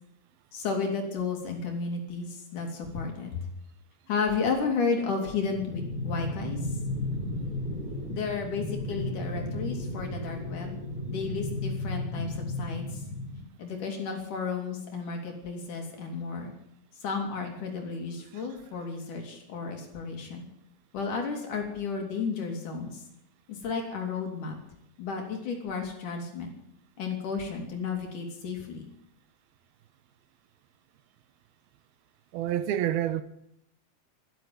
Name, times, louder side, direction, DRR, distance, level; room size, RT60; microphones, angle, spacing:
voice 1, 0.5-3.5 4.1-6.6 8.1-10.8 11.1-13.0 13.6-16.5 17.0-20.5 20.9-23.0 23.5-24.6 25.0-26.5 27.0-28.8, left 5 dB, 55° left, 4.2 m, -33 dB
sound 1, 5.4-13.4, left 1 dB, 10° left, 4.1 m, -34 dB
voice 2, 32.3-33.2, right 11 dB, 80° right, 2.6 m, -27 dB
12.5 x 12.0 x 9.4 m
omnidirectional pair, 4.6 m